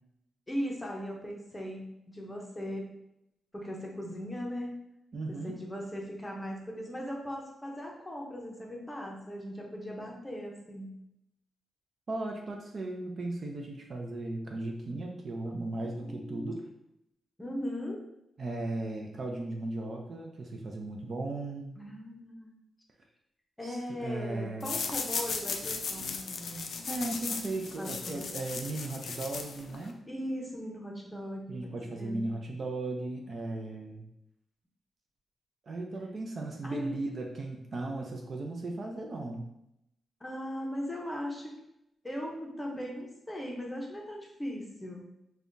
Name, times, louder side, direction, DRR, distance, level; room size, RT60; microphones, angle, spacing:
voice 1, 0.5-2.9 3.5-4.8 5.3-11.0 16.0-16.5 17.4-18.0 21.8-22.5 23.6-26.7 27.8-28.2 30.1-32.2 36.6-37.0 40.2-41.5 42.0-45.1, equal, 10° left, -1 dB, 0.7 m, -38 dB
voice 2, 5.1-5.6 12.1-16.6 18.4-21.8 23.6-24.7 26.9-30.0 31.5-34.0 35.7-39.5, right 2 dB, 45° right, 1 dB, 0.5 m, -36 dB
sound 1, 24.6-29.9, left 5 dB, 60° left, 0.4 m, -36 dB
5.4 x 2.3 x 2.6 m, 0.82 s
wide cardioid pair, 145°, 0 cm